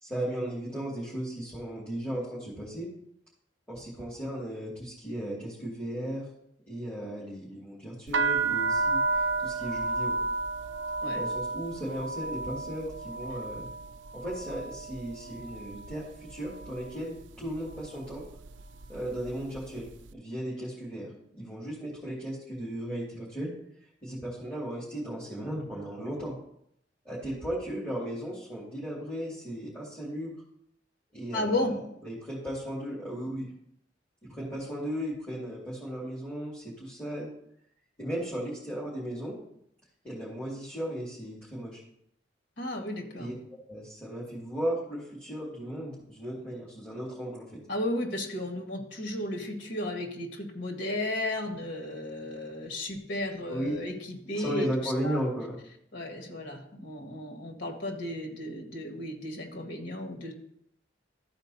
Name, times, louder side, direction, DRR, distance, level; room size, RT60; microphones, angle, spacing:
voice 1, 0.0-2.9 3.7-6.2 6.7-10.1 11.1-13.7 14.1-18.2 18.9-23.5 24.0-26.4 27.0-30.3 31.1-31.6 32.0-33.5 34.2-37.3 38.0-39.4 40.0-41.8 43.2-43.3 43.7-47.6 53.5-53.8 54.4-55.6, equal, 5° left, -8 dB, 2.4 m, -36 dB
sound 1, 8.1-16.0 16.3-16.9 17.6-17.9 18.1-19.6, right 3 dB, 75° right, 0.4 m, -32 dB
voice 2, 31.3-31.8 42.6-43.3 47.7-55.2 55.9-60.3, left 1 dB, 85° left, 2 dB, 1.9 m, -34 dB
13.5 x 4.5 x 4.2 m, 0.73 s
head